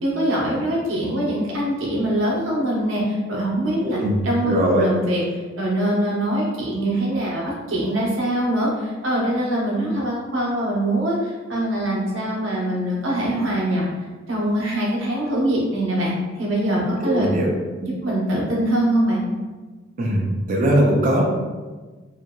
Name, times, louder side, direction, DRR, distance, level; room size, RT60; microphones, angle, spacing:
voice 1, 0.0-5.2 5.6-13.8 14.3-16.1 16.4-17.3 17.8-19.2, right 1 dB, 75° right, -4 dB, 0.8 m, -23 dB
voice 2, 3.8-4.9 17.0-17.5 20.0-21.2, right 1 dB, 40° right, -2 dB, 0.4 m, -20 dB
2.8 x 2.5 x 2.2 m, 1.3 s
head